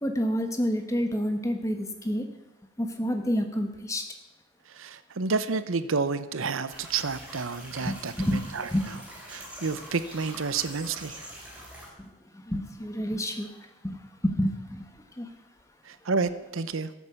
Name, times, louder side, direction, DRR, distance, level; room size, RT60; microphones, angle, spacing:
voice 1, 0.0-2.2 2.8-4.0 7.8-8.4 8.7-8.8 12.3-13.5 13.8-14.8 15.2-15.3, equal, 15° left, 6 dB, 1.2 m, -28 dB
voice 2, 4.7-8.9 9.3-11.3 15.8-16.9, right 4 dB, 80° right, 13 dB, 0.8 m, -30 dB
sound 1, 6.7-11.9, equal, 5° right, 3.4 m, -44 dB
14.0 x 8.3 x 7.0 m, 1.0 s
head